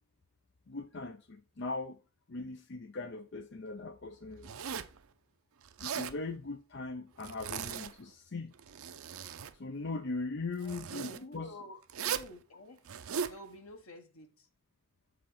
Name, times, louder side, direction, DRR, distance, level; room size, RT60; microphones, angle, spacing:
voice 1, 0.7-2.0 2.3-4.5 5.8-8.5 9.6-11.8, left 3 dB, 55° left, 0.6 m, -40 dB
Zipper (clothing), 4.4-5.0 5.6-6.2 7.2-8.1 8.5-9.5 10.6-11.2 11.9-12.3 12.8-13.4, right 8 dB, 85° right, 0.6 m, -38 dB
voice 2, 11.1-12.9 13.3-14.5, left 1 dB, 85° left, 1.5 m, -50 dB
7.8 x 3.9 x 5.6 m
head